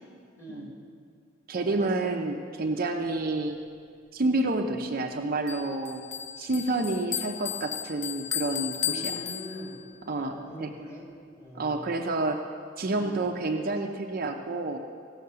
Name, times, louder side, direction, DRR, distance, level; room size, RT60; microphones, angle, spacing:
voice 1, 0.3-0.7 1.6-2.1 8.8-9.9 10.1-11.1 11.4-12.0 12.9-13.2, equal, 15° left, -4 dB, 2.6 m, -43 dB
voice 2, 1.5-3.6 4.1-6.0 6.4-9.1 10.1-10.7 11.5-12.4 12.8-14.8, right 2 dB, 50° right, 3 dB, 0.7 m, -29 dB
Bell, 5.5-10.0, left 10 dB, 40° left, 0.3 m, -34 dB
16.5 x 5.7 x 6.8 m, 2.2 s
head